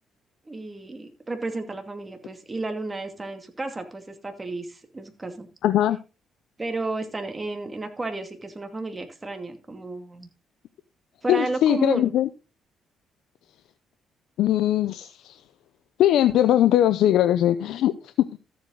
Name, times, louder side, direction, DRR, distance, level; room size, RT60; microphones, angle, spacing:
voice 1, 0.5-5.5 6.6-10.3 11.2-12.1, right 2 dB, 20° right, 6 dB, 2.4 m, -32 dB
voice 2, 5.6-6.0 11.3-12.3 14.4-15.4 16.0-18.4, left 12 dB, 80° left, 11 dB, 0.6 m, -21 dB
13.5 x 8.0 x 3.9 m, 0.30 s
cardioid pair, 90°, 0 cm